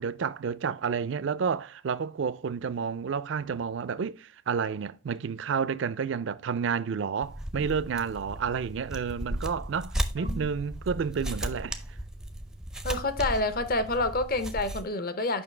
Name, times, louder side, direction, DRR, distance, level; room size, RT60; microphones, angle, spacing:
voice 1, 0.0-11.8, right 6 dB, 65° right, 0.4 m, -30 dB
sound 1, 7.2-14.8, equal, 5° right, 0.4 m, -35 dB
voice 2, 12.8-15.4, left 2 dB, 45° left, 0.7 m, -28 dB
7.1 x 5.4 x 3.2 m
head